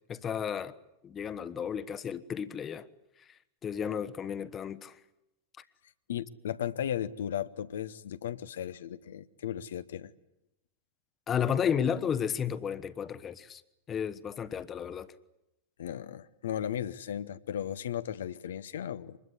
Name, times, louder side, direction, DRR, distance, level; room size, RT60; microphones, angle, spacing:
voice 1, 0.1-0.7 1.0-2.9 3.6-4.9 11.3-13.6 13.9-15.1, left 8 dB, 25° left, 1.2 m, -32 dB
voice 2, 6.1-10.1 15.8-19.2, left 10 dB, 60° left, 0.9 m, -36 dB
25.0 x 21.0 x 9.7 m
figure-of-eight pair, 90°, 0 cm